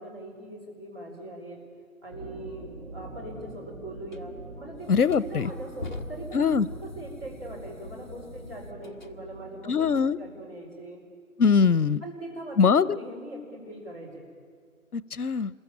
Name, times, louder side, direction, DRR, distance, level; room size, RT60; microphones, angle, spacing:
voice 1, 0.0-1.6 2.0-2.6 2.9-4.3 4.6-6.5 6.8-9.9 10.2-11.0 12.0-14.2, right 1 dB, 15° right, -5 dB, 4.6 m, -41 dB
sound 1, 2.1-10.0, right 3 dB, 45° right, 6.3 m, -44 dB
sound 2, 4.1-4.2 4.8-9.1, left 2 dB, 30° left, 1.3 m, -43 dB
voice 2, 4.9-5.5 6.3-6.7 9.7-10.2 11.4-12.0 12.6-13.0 14.9-15.5, left 6 dB, 85° left, 20 dB, 0.8 m, -22 dB
27.5 x 22.0 x 8.7 m, 2.1 s
figure-of-eight pair, 170°, 43 cm